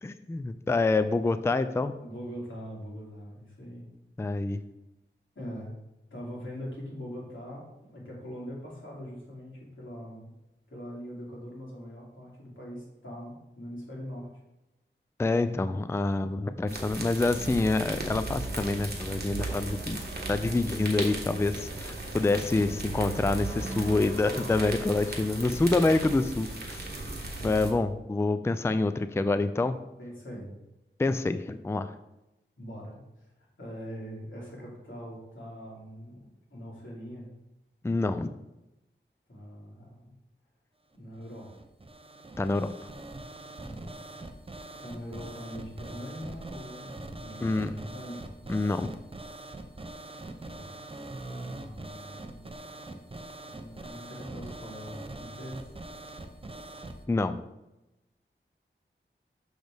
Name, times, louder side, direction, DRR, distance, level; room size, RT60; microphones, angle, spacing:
voice 1, 0.0-1.9 4.2-4.6 15.2-20.0 20.3-26.9 27.4-29.8 31.0-31.9 37.8-38.3 42.4-42.7 47.4-47.7 48.5-48.9 57.1-57.4, left 2 dB, 15° left, 11 dB, 0.3 m, -27 dB
voice 2, 2.0-3.9 4.3-4.5 5.3-5.7 6.1-7.6 7.9-10.3 10.7-14.3 27.4-27.7 30.0-30.5 32.6-37.4 39.3-40.1 40.9-41.5 43.6-43.9 44.8-46.9 47.2-48.3 50.5-50.7 51.3-52.6 53.5-55.6, equal, 80° left, -5 dB, 2.6 m, -42 dB
sound 1, 16.7-27.7, right 2 dB, 55° right, 1.4 m, -36 dB
sound 2, 41.1-57.0, right 2 dB, 30° right, 0.6 m, -43 dB
6.3 x 6.2 x 3.4 m, 0.93 s
wide cardioid pair, 70°, 20 cm